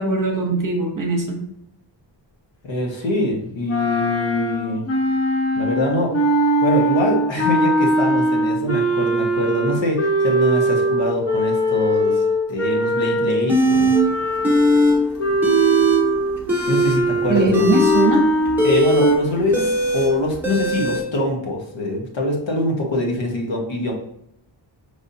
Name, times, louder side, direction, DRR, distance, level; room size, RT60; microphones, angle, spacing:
voice 1, 0.0-1.4 17.3-18.3, right 2 dB, 45° right, 2 dB, 0.9 m, -20 dB
voice 2, 2.6-4.9 5.5-6.1 6.6-12.2 12.5-13.9 16.7-17.7 18.6-23.9, left 1 dB, 70° left, 0 dB, 1.2 m, -23 dB
sound 1, 3.7-13.5 13.9-19.2, right 1 dB, 30° left, 0.9 m, -21 dB
sound 2, 13.5-14.0 14.4-15.0 15.2-16.0 16.4-21.0, right 1 dB, 5° right, 1.0 m, -19 dB
5.4 x 3.3 x 2.7 m, 0.75 s
wide cardioid pair, 135°, 46 cm